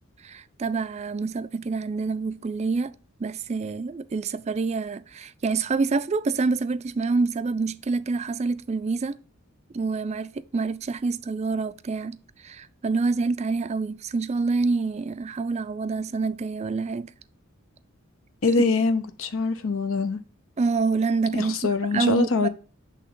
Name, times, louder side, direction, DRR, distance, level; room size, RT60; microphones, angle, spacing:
voice 1, 0.2-2.9 3.2-9.2 9.7-17.1 20.6-21.7 21.9-22.5, right 4 dB, 30° right, 0.4 m, -27 dB
voice 2, 18.4-20.2 21.3-22.5, left 4 dB, 70° left, 0.7 m, -24 dB
8.2 x 3.4 x 3.7 m
head